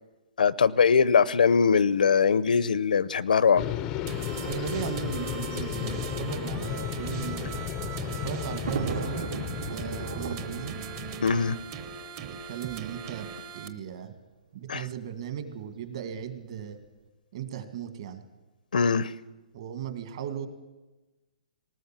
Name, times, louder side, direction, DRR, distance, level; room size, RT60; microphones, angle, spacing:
voice 1, 0.4-3.6 11.2-11.6 14.7-14.8 18.7-19.1, left 6 dB, 85° left, 19 dB, 0.8 m, -21 dB
sound 1, 3.6-11.9, left 10 dB, 15° left, 0.6 m, -35 dB
sound 2, 4.1-13.7, right 8 dB, 25° right, 1.0 m, -40 dB
voice 2, 4.4-7.5 8.1-10.7 12.2-14.2 14.5-16.8 17.3-18.2 19.5-20.5, right 8 dB, 40° right, 9 dB, 2.0 m, -37 dB
Thunder, 7.4-12.5 13.4-13.5 13.7-13.8 14.9-15.2, right 6 dB, 70° right, 3.5 m, -38 dB
19.5 x 18.5 x 7.5 m, 1.2 s
hypercardioid pair, 170°, 4 cm